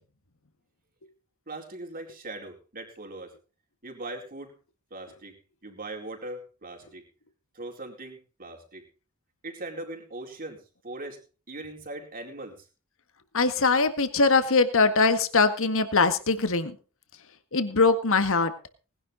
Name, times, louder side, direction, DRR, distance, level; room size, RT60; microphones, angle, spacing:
voice 1, 1.5-3.3 3.8-4.5 4.9-5.3 5.6-7.0 7.5-8.8 9.4-10.6 10.8-11.2 11.5-12.6, right 2 dB, 40° right, 2 dB, 4.4 m, -40 dB
voice 2, 13.3-16.7 17.5-18.5, left 4 dB, 65° left, 10 dB, 1.8 m, -22 dB
19.5 x 11.0 x 3.9 m, 0.35 s
head